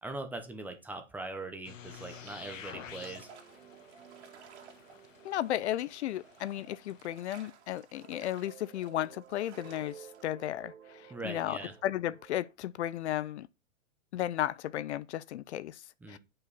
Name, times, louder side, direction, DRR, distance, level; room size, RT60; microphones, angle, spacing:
voice 1, 0.0-3.3 11.1-11.7 16.0-16.2, right 2 dB, 5° right, 0.7 m, -41 dB
sound 1, 1.6-7.1, left 8 dB, 85° left, 1.4 m, -51 dB
sound 2, 1.8-10.3, right 6 dB, 60° right, 2.2 m, -57 dB
sound 3, 2.8-7.6 8.0-12.5, right 9 dB, 75° right, 1.1 m, -55 dB
voice 2, 5.2-13.5 14.1-15.8 16.1-16.2, left 12 dB, 60° left, 0.5 m, -34 dB
9.0 x 5.5 x 4.1 m
hypercardioid pair, 150°, 38 cm